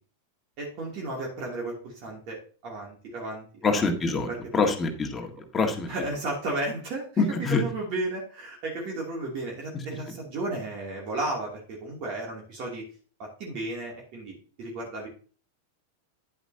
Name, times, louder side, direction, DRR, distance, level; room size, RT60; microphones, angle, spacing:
voice 1, 0.6-3.9 4.3-4.7 5.9-12.8 13.2-15.1, right 2 dB, 40° right, -2 dB, 2.8 m, -34 dB
voice 2, 3.6-4.3 4.5-5.3 5.5-5.9 7.2-7.6, left 4 dB, 15° left, 3 dB, 1.8 m, -25 dB
10.5 x 8.0 x 2.8 m, 0.40 s
figure-of-eight pair, 90°, 0 cm